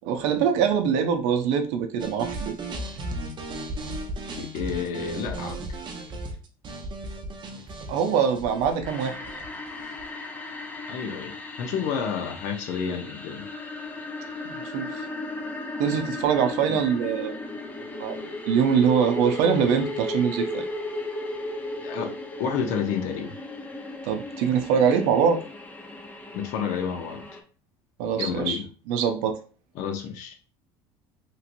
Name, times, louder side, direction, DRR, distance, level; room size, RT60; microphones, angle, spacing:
voice 1, 0.1-2.5 7.9-9.4 14.4-15.1 15.8-17.4 17.8-18.2 18.5-20.7 24.0-25.4 28.0-28.6 28.9-29.4, right 7 dB, 80° right, 0.6 m, -23 dB
sound 1, 2.0-10.1, right 2 dB, 40° right, 0.6 m, -36 dB
voice 2, 4.4-5.7 10.9-13.5 16.7-16.8 21.8-22.1 22.4-23.3 26.3-27.2 28.2-28.7 29.8-30.3, left 7 dB, 70° left, 0.8 m, -30 dB
sound 2, 8.8-27.4, left 2 dB, 15° left, 0.6 m, -35 dB
3.0 x 2.9 x 2.6 m
supercardioid pair, 115°, 12 cm